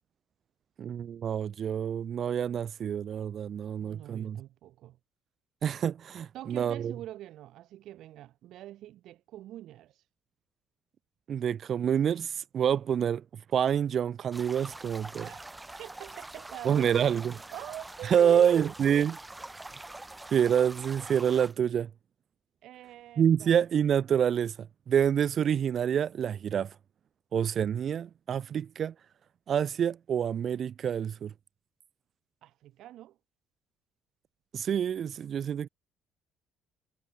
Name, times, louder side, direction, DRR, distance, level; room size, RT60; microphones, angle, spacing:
voice 1, 0.8-4.4 5.6-6.9 11.3-13.2 13.5-15.3 16.6-17.4 18.0-19.2 20.3-21.9 23.2-24.6 24.9-26.7 27.3-28.9 29.5-31.3 34.5-35.7, right 8 dB, 40° right, 0.4 m, -27 dB
voice 2, 3.8-5.0 6.3-10.0 15.1-15.4 15.8-17.1 17.5-18.7 22.6-23.5 32.4-33.2, right 14 dB, 60° right, 4.3 m, -44 dB
sound 1, 14.3-21.5, right 2 dB, 10° right, 2.9 m, -45 dB
cardioid pair, 165°, 0 cm